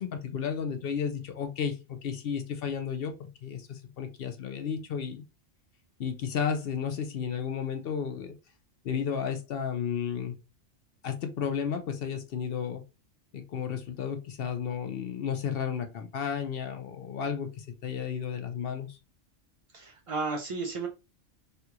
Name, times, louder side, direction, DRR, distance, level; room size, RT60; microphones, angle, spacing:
voice 1, 0.0-5.2 6.0-8.3 8.8-10.3 11.0-12.8 13.3-19.0, left 7 dB, 60° left, 7 dB, 0.7 m, -33 dB
voice 2, 19.7-20.9, right 3 dB, 60° right, 2 dB, 0.3 m, -33 dB
3.3 x 2.3 x 2.8 m, 0.27 s
omnidirectional pair, 1.3 m